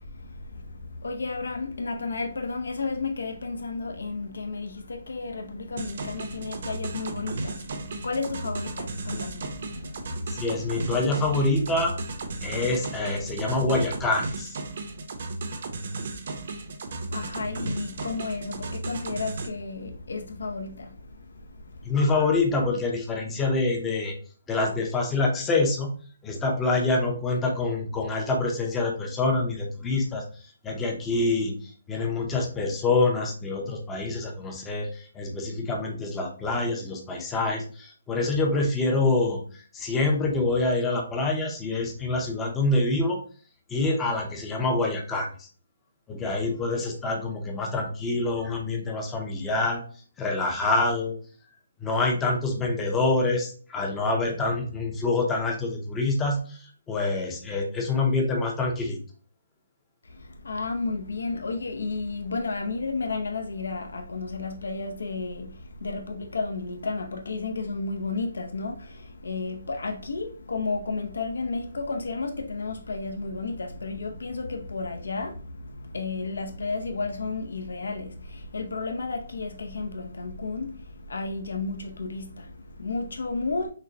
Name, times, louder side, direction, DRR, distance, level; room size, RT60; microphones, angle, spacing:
voice 1, 0.0-11.1 12.3-12.6 13.2-13.4 16.9-21.9 60.0-83.7, left 3 dB, 85° left, 0.6 m, -33 dB
sound 1, 5.8-19.5, right 3 dB, 40° right, 0.6 m, -35 dB
voice 2, 10.3-12.0 12.4-14.6 21.8-24.1 24.5-25.9 26.2-30.2 30.6-31.5 31.9-39.4 39.7-43.2 43.7-45.5 46.1-49.8 50.2-51.2 51.8-56.6 56.9-59.0, left 2 dB, 5° left, 0.5 m, -26 dB
6.1 x 2.1 x 2.7 m
hypercardioid pair, 180°, 0 cm